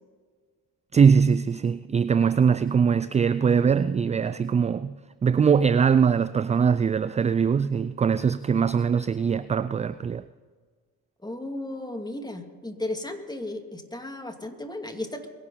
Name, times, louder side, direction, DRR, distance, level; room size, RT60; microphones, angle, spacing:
voice 1, 0.9-4.9 5.2-10.2, right 6 dB, 20° right, 0.3 m, -22 dB
voice 2, 11.2-15.3, left 1 dB, 10° left, 2.5 m, -34 dB
23.0 x 11.5 x 4.1 m
hypercardioid pair, 60°, 44 cm